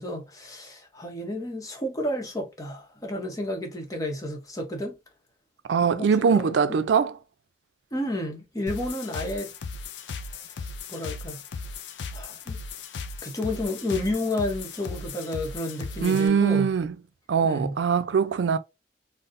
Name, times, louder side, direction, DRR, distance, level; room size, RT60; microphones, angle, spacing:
voice 1, 0.0-4.9 5.8-6.5 7.9-9.5 10.3-11.4 12.1-12.6 13.2-16.7 17.4-17.8, left 1 dB, 20° left, 0.8 m, -31 dB
voice 2, 5.7-7.1 16.0-16.9 17.3-18.6, right 6 dB, 85° right, 0.4 m, -22 dB
sound 1, 8.7-16.3, left 4 dB, 80° left, 0.4 m, -37 dB
4.0 x 2.0 x 2.5 m
head